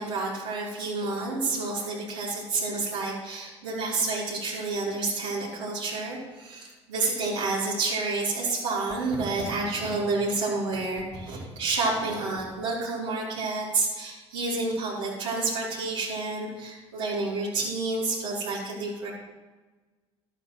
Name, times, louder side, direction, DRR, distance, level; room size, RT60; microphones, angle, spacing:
voice 1, 0.0-19.1, right 3 dB, 85° right, -10 dB, 2.8 m, -29 dB
12.0 x 8.8 x 3.0 m, 1.2 s
hypercardioid pair, 60°, 15 cm